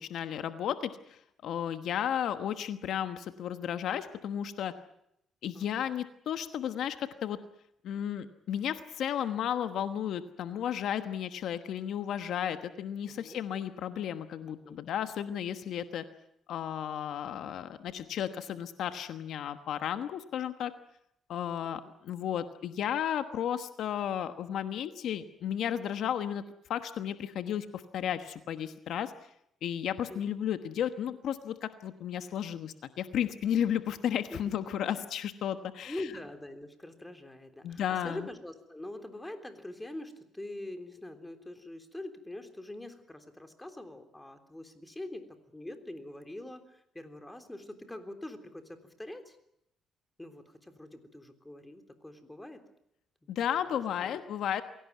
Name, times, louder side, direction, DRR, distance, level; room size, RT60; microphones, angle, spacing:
voice 1, 0.0-4.7 5.4-7.4 7.8-16.0 16.5-20.7 21.3-26.4 26.7-29.1 29.6-36.0 37.6-38.3 53.3-54.6, left 9 dB, 75° left, 10 dB, 1.2 m, -33 dB
voice 2, 5.5-5.9 13.0-13.4 14.4-14.8 21.6-21.9 30.1-30.2 34.3-34.4 34.9-35.1 35.8-49.4 50.2-52.6 53.2-53.3 53.7-54.2, left 1 dB, 10° left, 7 dB, 3.4 m, -44 dB
23.0 x 17.5 x 9.4 m, 0.76 s
cardioid pair, 90°, 0 cm